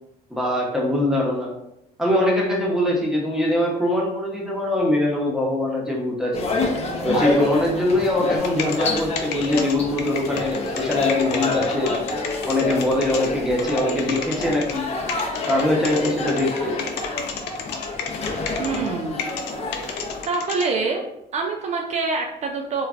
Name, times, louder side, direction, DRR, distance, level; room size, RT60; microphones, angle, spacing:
voice 1, 0.3-1.5 2.0-6.5 7.0-12.0 12.5-14.9 15.5-16.8, left 1 dB, 5° right, -3 dB, 0.8 m, -22 dB
sound 1, 6.3-20.2, left 2 dB, 40° left, 0.6 m, -27 dB
sound 2, 8.4-13.3 13.6-14.8 15.1-18.9 19.2-20.7, left 7 dB, 85° left, 0.4 m, -31 dB
voice 2, 18.6-19.2 19.8-21.0 21.3-22.9, right 4 dB, 40° right, 1 dB, 0.4 m, -26 dB
3.1 x 2.3 x 2.4 m, 0.81 s
cardioid pair, 110°, 17 cm